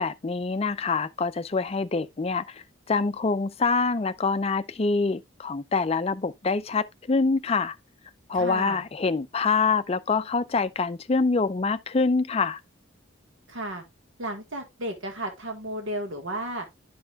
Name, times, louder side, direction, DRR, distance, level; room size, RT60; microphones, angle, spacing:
voice 1, 0.0-7.8 8.3-12.6, left 4 dB, 30° left, 0.4 m, -25 dB
voice 2, 8.3-8.8 13.5-13.8 14.2-16.7, right 1 dB, 75° right, 1.6 m, -33 dB
11.0 x 5.3 x 2.3 m
head